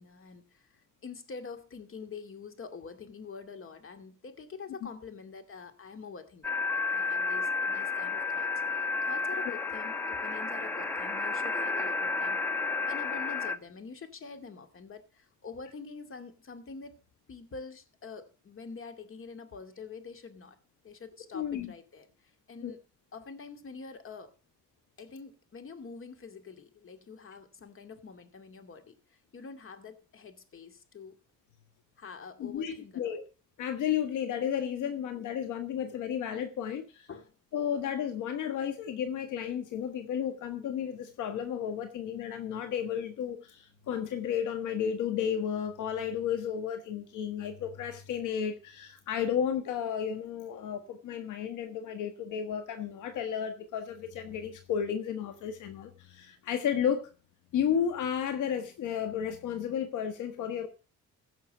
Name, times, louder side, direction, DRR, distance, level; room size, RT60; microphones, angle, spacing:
voice 1, 0.0-12.4 12.8-17.0 17.3-20.6 20.8-22.8 23.1-24.3 25.0-31.2 32.0-33.2 37.1-37.3, left 5 dB, 45° left, 2.3 m, -46 dB
sound 1, 6.4-13.6, left 4 dB, 5° left, 1.3 m, -31 dB
voice 2, 21.3-21.7 22.6-22.7 32.4-33.2 33.6-37.1 37.5-57.1 57.5-60.7, left 8 dB, 80° left, 1.5 m, -33 dB
16.0 x 6.3 x 6.4 m
cardioid pair, 90°, 30 cm